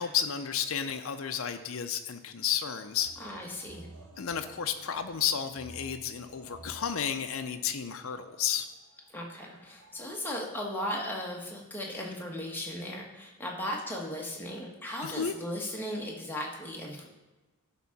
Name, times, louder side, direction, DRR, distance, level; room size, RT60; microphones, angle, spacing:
voice 1, 0.0-3.4 4.2-8.7 15.0-15.3, left 8 dB, 65° left, 6 dB, 0.5 m, -32 dB
sound 1, 3.0-11.0, right 2 dB, 80° right, 1.4 m, -53 dB
voice 2, 3.2-3.9 9.1-17.1, left 1 dB, 10° left, -2 dB, 1.2 m, -37 dB
11.0 x 3.7 x 5.8 m, 1.2 s
head